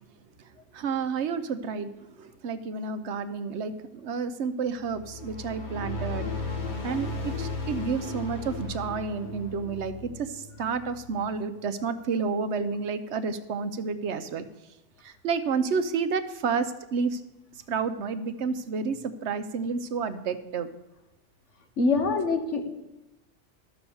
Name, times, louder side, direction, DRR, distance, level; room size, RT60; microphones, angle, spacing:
voice 1, 0.7-6.3 6.8-14.4 15.0-17.2 17.7-20.7, right 5 dB, 70° right, 10 dB, 1.0 m, -30 dB
sound 1, 4.8-11.4, left 3 dB, 40° left, 1.7 m, -35 dB
voice 2, 21.8-22.7, left 3 dB, 80° left, 6 dB, 1.5 m, -24 dB
13.0 x 6.1 x 7.1 m, 0.94 s
omnidirectional pair, 1.2 m